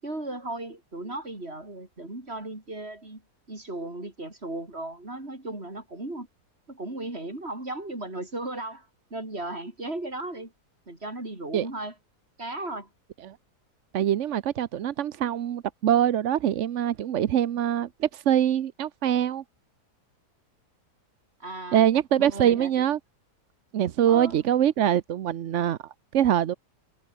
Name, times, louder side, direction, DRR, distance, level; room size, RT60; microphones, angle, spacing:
voice 1, 0.0-3.2 3.5-6.3 6.7-10.5 10.9-11.9 12.4-12.9 21.4-21.9 22.2-22.8 24.1-24.4, right 2 dB, 40° right, 5.6 m, -36 dB
voice 2, 13.9-19.4 21.7-23.0 23.7-26.5, right 10 dB, 55° right, 1.0 m, -24 dB
omnidirectional pair, 1.7 m